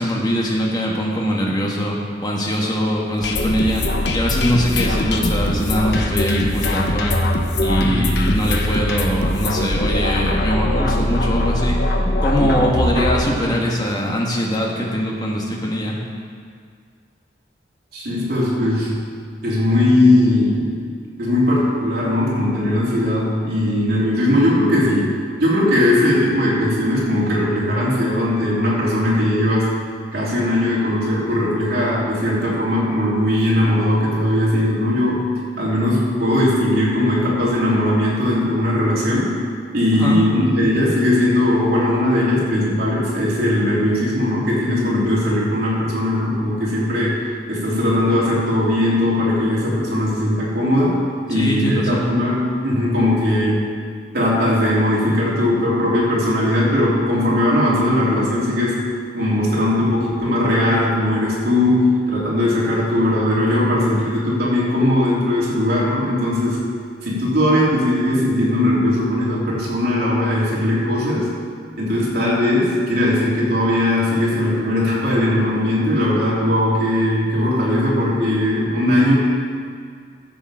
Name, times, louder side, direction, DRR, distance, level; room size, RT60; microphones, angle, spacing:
voice 1, 0.0-3.8 4.1-7.1 7.6-11.8 12.2-16.0 39.9-40.2 51.3-52.0, equal, 25° left, -2 dB, 1.6 m, -22 dB
sound 1, 3.2-13.3, left 1 dB, 65° left, 1.0 m, -21 dB
voice 2, 7.8-8.1 17.9-19.0 19.4-20.8 21.2-29.7 30.1-35.3 35.6-39.3 39.7-47.2 47.5-51.0 51.3-53.6 54.1-58.8 59.1-66.6 67.0-71.3 71.8-79.2, left 1 dB, 60° right, -7 dB, 3.3 m, -19 dB
13.5 x 7.1 x 4.9 m, 2.1 s
head